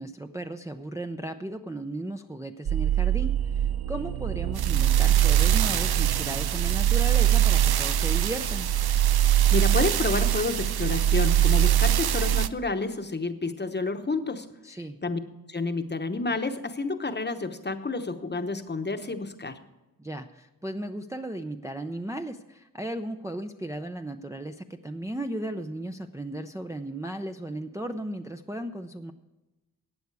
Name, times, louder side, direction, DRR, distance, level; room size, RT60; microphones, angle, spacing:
voice 1, 0.0-8.7 14.6-15.0 20.0-29.1, right 1 dB, 10° right, 5 dB, 0.5 m, -35 dB
sound 1, 2.7-12.5, right 11 dB, 85° right, 0.6 m, -22 dB
voice 2, 9.5-14.5 15.0-15.2 15.5-19.6, left 3 dB, 30° left, 8 dB, 1.0 m, -29 dB
15.0 x 9.3 x 4.7 m, 1.0 s
wide cardioid pair, 125°, 36 cm